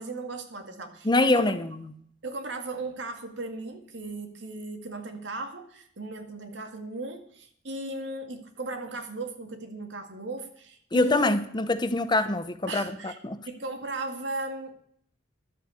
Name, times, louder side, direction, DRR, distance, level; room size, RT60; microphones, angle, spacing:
voice 1, 0.0-1.5 2.2-11.4 12.7-13.2 13.4-14.7, right 2 dB, 75° right, 2.0 m, -36 dB
voice 2, 1.0-1.7 10.9-13.4, left 2 dB, 25° left, 0.8 m, -24 dB
12.0 x 8.1 x 8.0 m
head